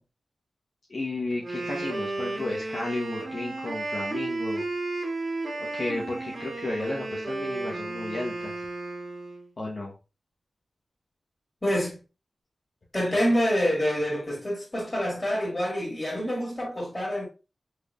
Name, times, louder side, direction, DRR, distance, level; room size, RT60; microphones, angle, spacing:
voice 1, 0.9-4.7 5.6-8.7 9.6-9.9, left 2 dB, 55° left, 1.1 m, -33 dB
Wind instrument woodwind instrument, 1.3-9.5, right 2 dB, 70° right, 2.1 m, -33 dB
voice 2, 11.6-12.0 12.9-17.2, equal, 25° left, 2.5 m, -26 dB
4.7 x 3.4 x 2.4 m
cardioid pair, 60°, 0 cm